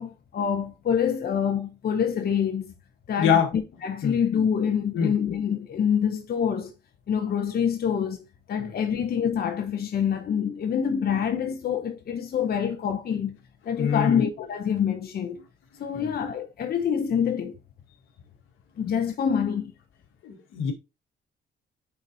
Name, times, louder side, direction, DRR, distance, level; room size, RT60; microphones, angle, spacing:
voice 1, 0.0-2.7 3.1-3.4 3.8-6.7 7.1-13.4 13.7-15.4 15.8-17.5 18.8-19.7, left 8 dB, 50° left, 0.8 m, -26 dB
voice 2, 3.2-3.5 4.0-4.2 4.9-5.1 8.6-8.7 13.8-14.2 15.9-16.2 20.2-20.7, left 7 dB, 85° left, 1.7 m, -24 dB
8.7 x 4.1 x 2.8 m
cardioid pair, 90°, 20 cm